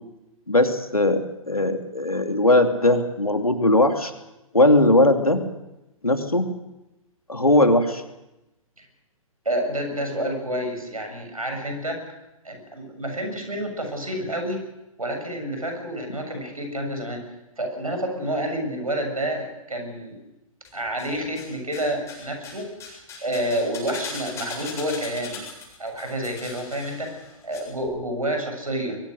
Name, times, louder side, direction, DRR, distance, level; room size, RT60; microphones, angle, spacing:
voice 1, 0.5-4.1 4.5-5.4 6.0-6.5 7.3-8.0, left 1 dB, 85° left, 6 dB, 2.6 m, -19 dB
voice 2, 9.5-12.0 12.4-14.6 15.0-17.2 17.6-20.2 20.7-22.7 23.2-25.4 25.8-27.2 27.4-29.0, right 1 dB, 80° right, 4 dB, 7.2 m, -29 dB
sound 1, 20.6-21.5 21.7-27.6 27.8-27.9, left 4 dB, 15° left, 7.6 m, -39 dB
22.5 x 21.5 x 6.6 m, 0.94 s
figure-of-eight pair, 120°, 18 cm